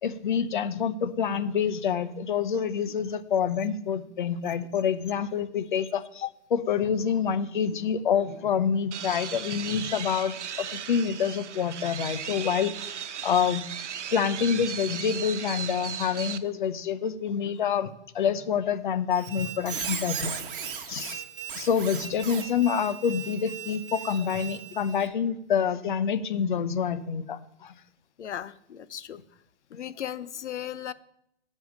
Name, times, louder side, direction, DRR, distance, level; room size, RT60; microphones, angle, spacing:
voice 1, 0.0-6.2 6.5-12.7 13.2-13.6 14.1-17.9 18.1-20.3 20.9-21.2 21.6-27.7, left 7 dB, 45° left, 13 dB, 0.8 m, -27 dB
sound 1, 8.9-16.4, right 8 dB, 80° right, 1.0 m, -36 dB
Squeak, 19.1-25.1, right 8 dB, 50° right, 1.5 m, -37 dB
voice 2, 28.2-29.2 29.7-30.9, left 10 dB, 75° left, 15 dB, 0.9 m, -36 dB
9.2 x 5.6 x 7.5 m, 0.75 s
hypercardioid pair, 175°, 35 cm